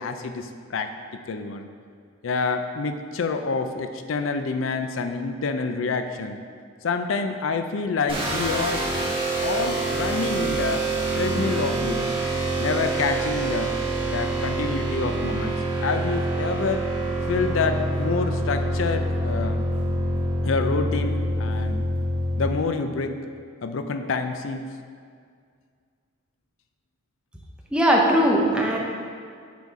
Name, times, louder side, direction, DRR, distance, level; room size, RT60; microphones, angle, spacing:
voice 1, 0.0-1.7 2.2-6.4 6.8-8.9 9.4-10.9 11.2-12.2 12.6-13.7 14.0-15.5 15.8-16.8 17.3-19.6 20.4-21.8 22.4-23.3 23.6-24.7, left 4 dB, 85° left, 7 dB, 0.5 m, -27 dB
sound 1, 8.1-22.4, right 1 dB, 25° right, 1.3 m, -26 dB
voice 2, 27.7-28.8, equal, 5° right, -2 dB, 0.8 m, -19 dB
8.3 x 4.1 x 4.7 m, 2.1 s
head